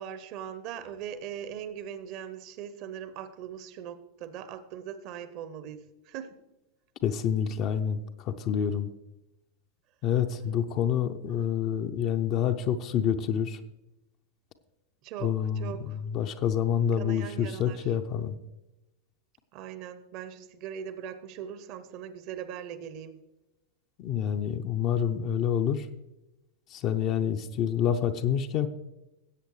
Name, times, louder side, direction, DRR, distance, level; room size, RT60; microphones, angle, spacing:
voice 1, 0.0-6.4 15.0-16.0 17.0-18.0 19.5-23.2, right 9 dB, 40° right, 13 dB, 0.8 m, -40 dB
voice 2, 7.0-8.9 10.0-13.6 15.2-18.4 24.0-25.9 26.7-28.7, left 8 dB, 35° left, 7 dB, 0.6 m, -28 dB
16.5 x 8.1 x 3.2 m, 0.97 s
figure-of-eight pair, 90°, 0 cm